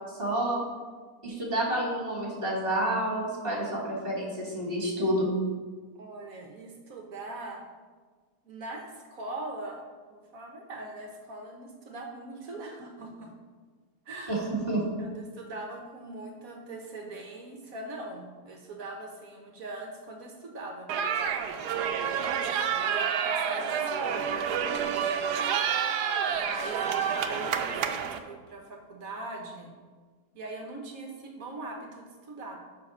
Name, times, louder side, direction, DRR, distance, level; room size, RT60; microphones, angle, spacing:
voice 1, 0.2-0.6 1.2-5.3 14.3-14.8, right 1 dB, 35° right, -3 dB, 2.5 m, -29 dB
voice 2, 6.0-7.6 8.4-13.3 14.0-14.5 15.0-25.2 26.0-29.7 30.3-32.6, right 2 dB, 60° right, 2 dB, 1.4 m, -41 dB
sound 1, 20.9-28.2, right 7 dB, 75° right, 1.2 m, -29 dB
7.4 x 5.9 x 5.5 m, 1.4 s
omnidirectional pair, 1.8 m